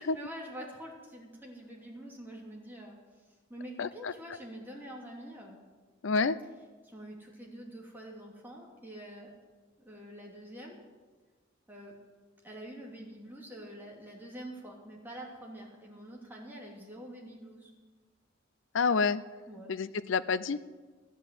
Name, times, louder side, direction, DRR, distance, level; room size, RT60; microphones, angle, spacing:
voice 1, 0.0-3.0 3.3-5.6 6.8-9.3 9.8-10.8 11.7-11.9 12.4-17.7 19.5-19.7, right 1 dB, 10° right, -2 dB, 2.8 m, -46 dB
voice 2, 3.8-4.1 6.0-6.4 18.7-19.2 19.7-20.6, left 4 dB, 75° left, 16 dB, 0.6 m, -28 dB
13.5 x 10.0 x 7.7 m, 1.4 s
head